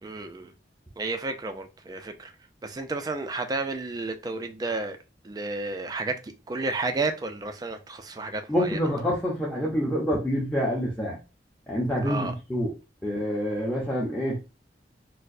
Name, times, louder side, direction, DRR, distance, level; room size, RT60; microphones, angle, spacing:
voice 1, 0.0-0.5 1.0-2.3 2.6-5.0 5.2-8.8 12.0-12.3, right 3 dB, 20° right, 0.3 m, -32 dB
voice 2, 8.5-11.2 11.7-12.7 13.0-14.4, equal, 5° left, 0.6 m, -27 dB
4.3 x 2.0 x 2.5 m
head